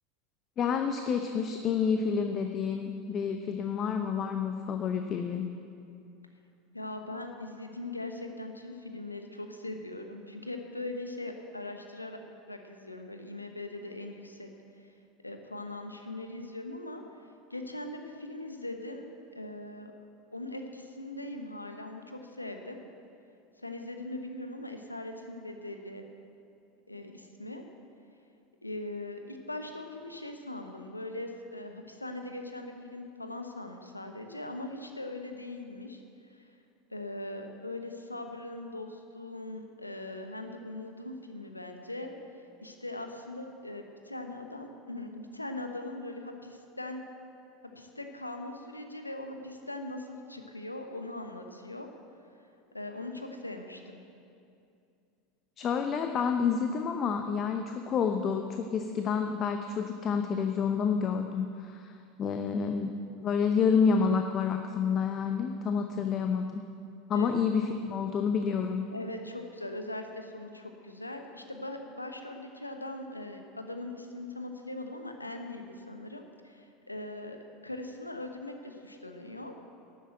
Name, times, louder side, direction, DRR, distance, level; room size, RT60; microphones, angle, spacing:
voice 1, 0.6-5.4 55.6-66.6 67.1-68.8, left 6 dB, 35° left, 6 dB, 0.7 m, -29 dB
voice 2, 6.7-12.2 12.5-14.5 15.2-17.0 17.5-19.9 20.3-22.8 23.6-26.0 26.9-27.6 28.6-36.0 36.3-36.5 36.9-42.1 42.6-47.0 47.7-51.9 52.7-54.0 67.1-67.3 68.9-77.4 77.6-79.5, left 2 dB, 90° left, 5 dB, 1.0 m, -40 dB
12.0 x 8.5 x 7.7 m, 2.5 s
figure-of-eight pair, 80°, 0 cm